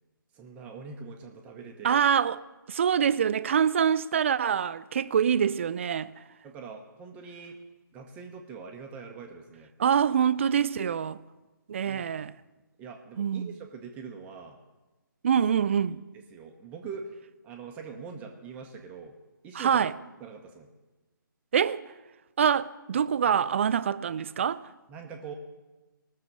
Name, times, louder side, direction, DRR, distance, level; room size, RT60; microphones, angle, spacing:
voice 1, 0.3-2.0 6.4-7.6 7.9-9.7 11.8-12.3 12.8-14.6 15.9-17.2 17.4-19.2 19.4-19.9 20.2-20.7 24.9-25.3, right 5 dB, 10° right, 0.9 m, -43 dB
voice 2, 1.8-2.4 2.7-6.1 9.8-11.2 11.7-12.3 13.2-13.5 15.2-16.0 19.5-19.9 21.5-21.8 22.4-24.7, right 8 dB, 35° right, 0.4 m, -25 dB
19.5 x 6.7 x 6.7 m
figure-of-eight pair, 150°, 11 cm